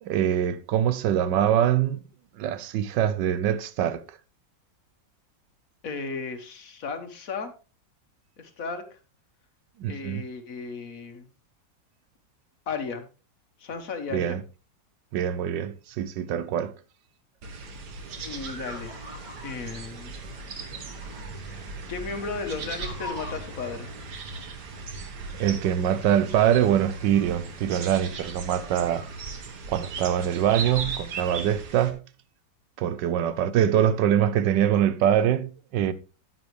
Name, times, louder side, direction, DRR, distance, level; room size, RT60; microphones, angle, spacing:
voice 1, 0.0-2.0 2.4-4.2 9.8-10.2 14.1-14.4 15.1-16.7 25.4-29.0 29.7-32.0 32.8-35.9, right 10 dB, 80° right, 1.3 m, -24 dB
voice 2, 5.8-7.5 8.4-9.0 9.9-11.3 12.7-13.1 13.6-14.4 18.2-18.9 19.4-20.1 21.3-23.9, left 4 dB, 55° left, 1.5 m, -35 dB
sound 1, 17.4-31.9, right 4 dB, 65° right, 1.9 m, -38 dB
sound 2, 18.0-24.1, left 1 dB, 25° right, 3.5 m, -43 dB
9.6 x 9.3 x 3.2 m
omnidirectional pair, 1.9 m